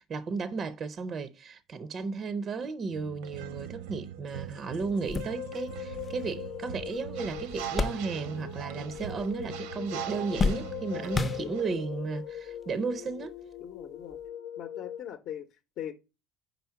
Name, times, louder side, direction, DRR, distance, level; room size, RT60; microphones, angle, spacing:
voice 1, 0.0-13.3, right 4 dB, 30° right, 0.5 m, -34 dB
sound 1, 2.9-11.7, right 10 dB, 90° right, 0.7 m, -41 dB
sound 2, 4.3-4.4 4.8-8.6 8.9-9.6 9.9-11.9 12.7-12.8 14.1-14.2, left 3 dB, 15° left, 0.5 m, -33 dB
sound 3, 4.8-15.0, left 11 dB, 80° left, 0.5 m, -41 dB
voice 2, 10.9-11.9 13.6-14.2 14.6-15.9, left 10 dB, 55° left, 0.8 m, -41 dB
5.1 x 4.5 x 5.6 m
cardioid pair, 135°, 0 cm